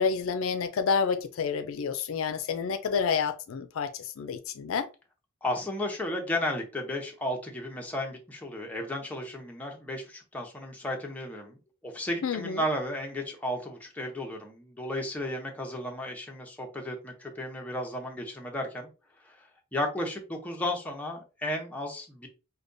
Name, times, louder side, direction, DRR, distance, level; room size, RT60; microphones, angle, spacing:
voice 1, 0.0-4.9 12.2-12.6, left 6 dB, 65° left, 0.4 m, -29 dB
voice 2, 5.4-11.6 11.8-18.9 19.3-19.4 19.7-22.3, left 1 dB, 5° left, 0.7 m, -34 dB
5.0 x 2.2 x 2.6 m
head